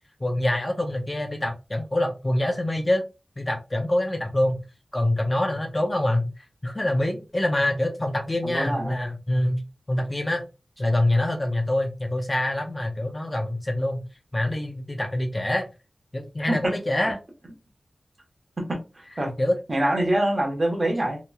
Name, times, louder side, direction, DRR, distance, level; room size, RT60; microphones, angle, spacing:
voice 1, 0.2-3.0 3.4-4.6 4.9-6.3 6.6-9.6 9.9-10.4 10.8-14.0 14.3-15.7 16.1-17.2 19.4-19.5, left 1 dB, 25° left, 3 dB, 0.6 m, -25 dB
voice 2, 8.4-9.0 16.5-17.1 18.6-19.3 19.7-21.2, right 1 dB, 40° right, 1 dB, 1.0 m, -25 dB
2.9 x 2.8 x 2.3 m, 0.28 s
wide cardioid pair, 90°, 0 cm